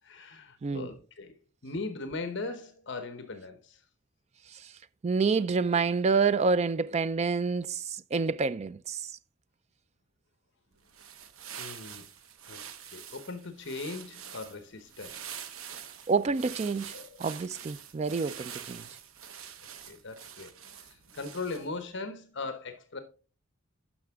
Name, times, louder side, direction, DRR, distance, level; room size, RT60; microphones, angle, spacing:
voice 1, 0.0-1.3 1.6-3.8 11.6-12.0 12.5-12.6 12.9-15.3 16.9-17.2 19.9-23.0, left 3 dB, 60° left, 0.9 m, -39 dB
voice 2, 5.0-9.0 16.1-16.9 17.2-18.8, right 4 dB, 30° right, 0.3 m, -28 dB
sound 1, 10.8-21.8, right 8 dB, 85° right, 0.8 m, -45 dB
11.5 x 6.0 x 3.5 m
head